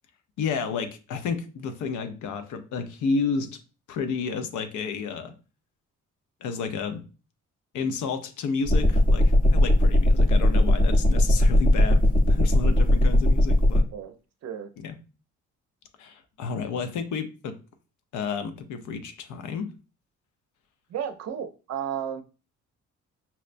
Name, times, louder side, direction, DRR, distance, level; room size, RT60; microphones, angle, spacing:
voice 1, 0.4-3.6 3.9-5.3 6.4-7.0 7.7-12.0 12.3-13.8 14.8-15.0 16.0-17.6 18.1-19.7, left 5 dB, 80° left, 0.6 m, -31 dB
sound 1, 8.7-13.8, left 1 dB, 30° left, 0.7 m, -19 dB
voice 2, 20.9-22.2, right 9 dB, 60° right, 0.5 m, -33 dB
5.5 x 2.1 x 2.5 m
cardioid pair, 90°, 30 cm